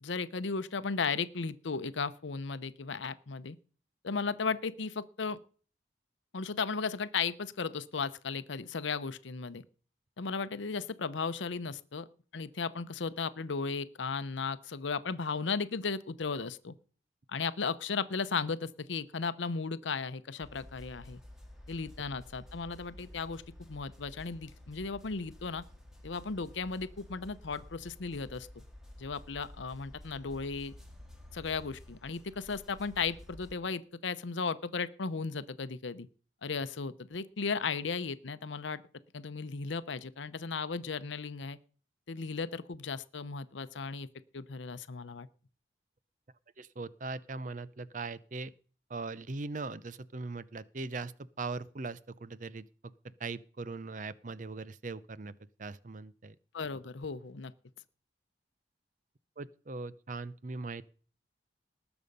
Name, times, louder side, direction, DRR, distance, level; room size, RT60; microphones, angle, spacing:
voice 1, 0.0-3.6 4.0-5.4 6.3-9.6 10.2-12.1 12.3-16.7 17.3-21.2 21.7-25.6 26.0-28.5 29.0-30.7 31.3-36.1 36.4-38.8 39.1-41.6 42.1-44.1 44.3-45.3 56.5-57.5, left 5 dB, 80° left, 14 dB, 0.7 m, -35 dB
sound 1, 20.4-33.5, left 1 dB, 5° right, 1.9 m, -52 dB
voice 2, 46.6-48.5 48.9-52.9 53.2-55.3 55.6-56.4 59.4-60.8, right 3 dB, 40° right, 17 dB, 0.6 m, -40 dB
19.5 x 7.0 x 5.3 m, 0.42 s
head